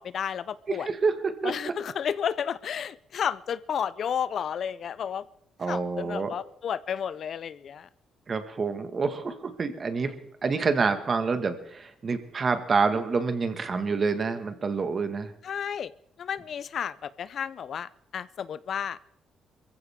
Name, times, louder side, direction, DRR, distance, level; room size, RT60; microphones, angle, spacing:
voice 1, 0.0-0.9 1.4-5.2 5.7-7.9 15.4-15.9 16.2-19.0, left 8 dB, 60° left, 17 dB, 0.5 m, -32 dB
voice 2, 0.7-1.5 5.6-6.3 8.3-15.3, right 4 dB, 40° right, 8 dB, 1.7 m, -27 dB
22.5 x 15.0 x 3.6 m, 0.75 s
cardioid pair, 90°, 0 cm